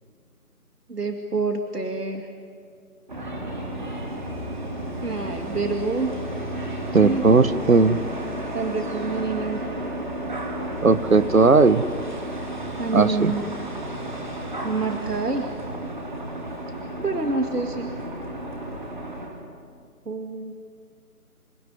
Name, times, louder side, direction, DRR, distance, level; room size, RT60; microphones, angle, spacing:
voice 1, 0.9-2.3 5.0-6.1 7.0-7.2 8.5-9.6 12.8-13.5 14.6-15.5 17.0-17.9 20.1-20.5, right 3 dB, 85° right, 5 dB, 2.3 m, -27 dB
sound 1, 3.1-19.3, right 1 dB, 30° right, 3.2 m, -32 dB
voice 2, 6.9-8.0 10.8-11.8 12.9-13.3, right 4 dB, 60° right, 15 dB, 1.2 m, -17 dB
27.5 x 17.5 x 9.6 m, 2.2 s
figure-of-eight pair, 170°, 45 cm